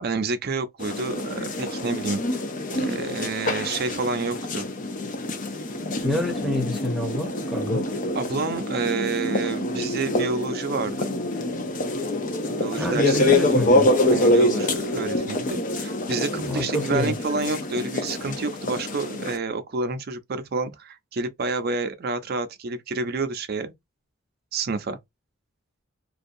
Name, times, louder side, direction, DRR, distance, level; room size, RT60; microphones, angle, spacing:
voice 1, 0.0-4.7 8.1-11.1 12.6-13.6 14.1-23.7 24.5-25.0, right 3 dB, 50° right, 0.5 m, -29 dB
sound 1, 0.8-19.4, left 1 dB, 40° left, 0.6 m, -26 dB
voice 2, 6.0-7.8 12.8-13.9 16.4-17.1, left 1 dB, ahead, 0.8 m, -27 dB
2.6 x 2.2 x 2.5 m
head